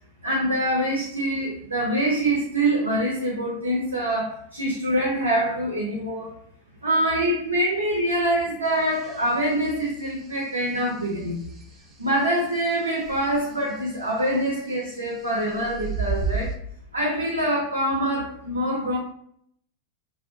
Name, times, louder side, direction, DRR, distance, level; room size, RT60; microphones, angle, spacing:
voice 1, 0.2-6.4 6.8-11.5 12.0-16.5 16.9-19.0, right 1 dB, 80° right, -3 dB, 0.5 m, -25 dB
sound 1, 8.7-9.3 9.7-9.8 10.2-10.7 11.6-11.7 13.0-13.7 15.2-16.6, right 5 dB, 25° right, 0.4 m, -30 dB
2.5 x 2.0 x 2.5 m, 0.67 s
figure-of-eight pair, 90°, 0 cm